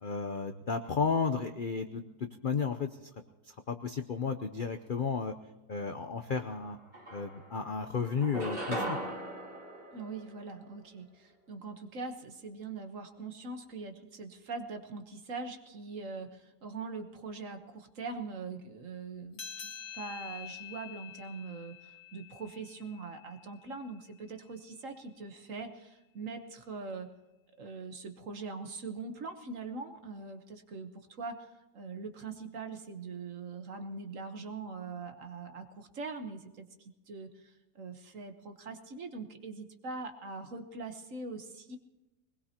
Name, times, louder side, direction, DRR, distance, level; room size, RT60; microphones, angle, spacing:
voice 1, 0.0-3.1 3.5-5.3 5.7-6.8 7.1-9.0, left 5 dB, 60° left, 7 dB, 0.5 m, -33 dB
sound 1, 6.5-6.6 6.9-7.7 8.2-10.8, right 1 dB, 25° right, 2.3 m, -38 dB
voice 2, 9.9-27.1 27.6-31.5 31.7-41.8, right 4 dB, 50° right, 6 dB, 1.5 m, -42 dB
sound 2, 19.3-24.2, left 9 dB, 85° left, 2.4 m, -47 dB
22.5 x 20.0 x 2.9 m, 1.0 s
omnidirectional pair, 1.8 m